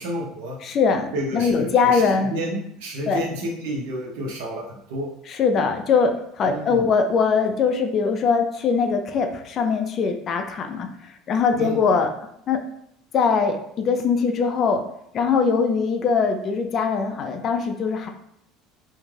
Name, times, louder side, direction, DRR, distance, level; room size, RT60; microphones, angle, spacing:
voice 1, 0.0-0.6 1.1-2.0 2.3-5.1 6.5-6.8 11.6-11.8, equal, 90° right, -1 dB, 0.8 m, -30 dB
voice 2, 0.6-2.3 3.1-3.2 5.3-10.9 11.3-12.1 12.5-12.6 13.1-14.8 15.1-18.1, left 5 dB, 30° left, 5 dB, 0.3 m, -21 dB
2.5 x 2.2 x 3.2 m, 0.72 s
cardioid pair, 165°, 0 cm